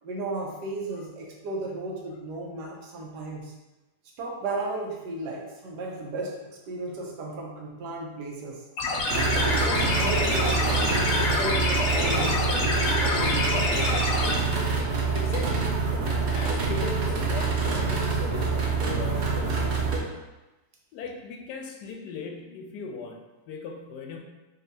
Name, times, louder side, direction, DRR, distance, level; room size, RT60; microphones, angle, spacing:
voice 1, 0.0-3.5 4.2-8.6 9.3-14.1, right 2 dB, 85° right, -1 dB, 1.3 m, -35 dB
sound 1, 8.8-14.3, left 2 dB, 60° left, 0.8 m, -26 dB
sound 2, 9.1-20.0, right 4 dB, 60° right, 0.7 m, -26 dB
voice 2, 15.1-20.0 20.9-24.2, left 4 dB, 90° left, 2 dB, 1.2 m, -39 dB
5.2 x 2.6 x 2.7 m, 1.1 s
omnidirectional pair, 1.7 m